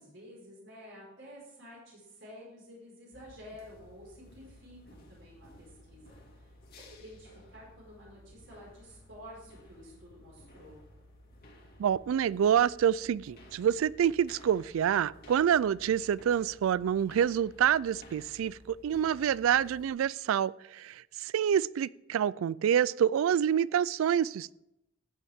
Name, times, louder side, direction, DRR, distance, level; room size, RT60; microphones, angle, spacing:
voice 1, 0.0-6.2 6.8-10.8, equal, 65° right, -4 dB, 4.8 m, -51 dB
sound 1, 3.1-19.9, left 1 dB, 50° left, 2.1 m, -55 dB
voice 2, 11.8-24.5, right 9 dB, 80° right, 22 dB, 0.3 m, -27 dB
14.5 x 8.4 x 3.6 m, 0.87 s
head